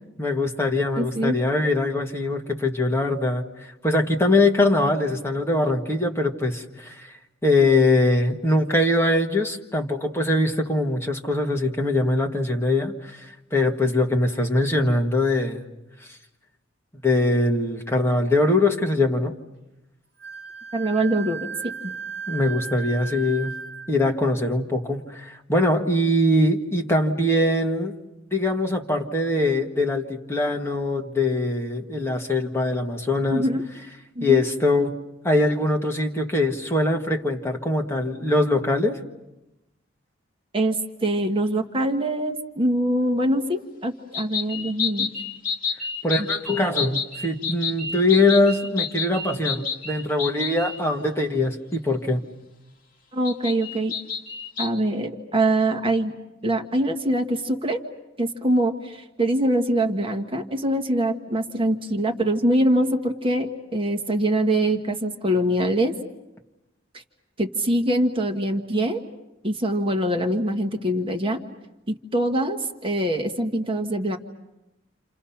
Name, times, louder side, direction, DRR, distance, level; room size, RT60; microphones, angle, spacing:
voice 1, 0.2-7.1 7.4-15.6 17.0-19.3 22.3-23.5 23.9-27.9 28.3-33.4 34.2-35.0 35.2-39.0 46.0-52.2, left 2 dB, 15° left, 2 dB, 1.6 m, -22 dB
voice 2, 0.9-1.4 20.7-21.5 21.8-21.9 33.3-33.6 34.1-34.5 40.5-45.1 46.2-46.3 53.1-53.9 54.6-56.1 56.4-57.8 58.2-66.0 66.9-67.0 67.4-69.0 69.4-71.4 71.9-74.2, right 1 dB, 25° right, 4 dB, 1.4 m, -23 dB
Wind instrument woodwind instrument, 20.2-23.9, right 6 dB, 45° right, 3.6 m, -35 dB
sound 1, 44.1-50.8 53.2-54.7, left 5 dB, 45° left, 2.4 m, -29 dB
29.5 x 28.5 x 5.8 m, 0.97 s
head